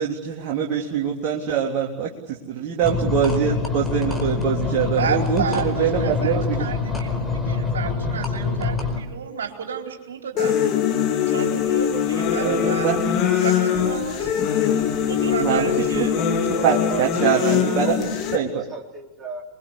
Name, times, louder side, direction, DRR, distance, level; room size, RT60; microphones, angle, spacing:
voice 1, 0.0-6.7 12.3-13.0 15.4-16.1 16.6-18.6, right 8 dB, 40° right, -1 dB, 3.5 m, -24 dB
sound 1, 2.8-9.0, left 4 dB, 10° left, 4.8 m, -25 dB
voice 2, 5.0-10.5 11.3-14.3 15.1-16.1, right 7 dB, 65° right, 2 dB, 4.4 m, -31 dB
sound 2, 10.4-18.4, left 8 dB, 35° left, 4.2 m, -22 dB
voice 3, 16.2-18.0 18.3-19.4, right 1 dB, 15° right, 0 dB, 3.9 m, -34 dB
27.5 x 22.5 x 8.3 m, 1.0 s
figure-of-eight pair, 90°, 0 cm